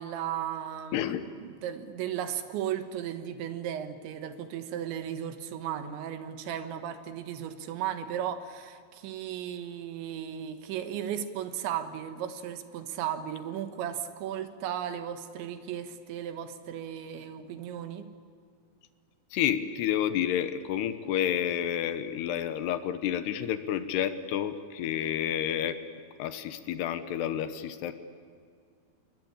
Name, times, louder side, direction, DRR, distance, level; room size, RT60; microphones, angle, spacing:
voice 1, 0.0-1.2 1.4-18.1, right 9 dB, 85° right, 9 dB, 3.7 m, -35 dB
voice 2, 0.9-1.3 19.3-25.8 26.2-27.9, left 10 dB, 75° left, 11 dB, 2.9 m, -30 dB
28.0 x 21.5 x 8.7 m, 2.3 s
omnidirectional pair, 5.2 m